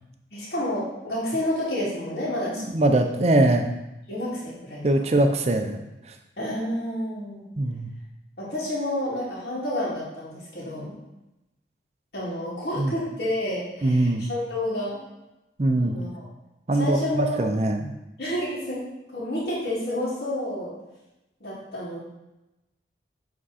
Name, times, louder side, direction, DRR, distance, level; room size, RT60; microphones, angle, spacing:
voice 1, 0.3-2.6 4.1-5.1 6.4-7.4 8.4-10.9 12.1-15.0 15.8-16.2 16.8-17.4 18.2-18.8 19.1-20.7 21.4-22.0, left 1 dB, 60° left, -9 dB, 2.3 m, -29 dB
voice 2, 2.6-3.7 4.8-6.1 7.6-7.9 12.8-12.9 13.8-14.2 15.6-16.0 16.7-17.9, right 1 dB, 35° right, 6 dB, 0.5 m, -22 dB
7.5 x 3.6 x 4.2 m, 0.95 s
head